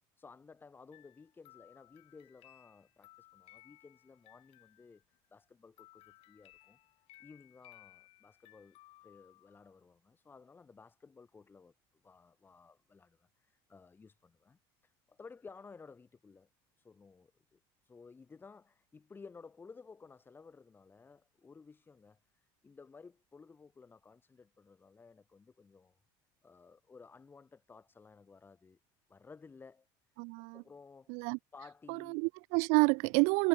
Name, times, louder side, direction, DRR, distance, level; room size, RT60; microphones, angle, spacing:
voice 1, 0.2-6.8 7.2-16.5 16.8-26.0 26.4-28.8 29.1-29.9 30.5-31.2 31.5-32.2, left 4 dB, 20° left, 2.4 m, -56 dB
sound 1, 0.9-5.3 5.8-9.8, left 19 dB, 65° left, 7.1 m, -61 dB
voice 2, 30.2-30.6 31.1-31.4 32.2-33.5, right 34 dB, 75° right, 0.4 m, -28 dB
cardioid pair, 125°, 11 cm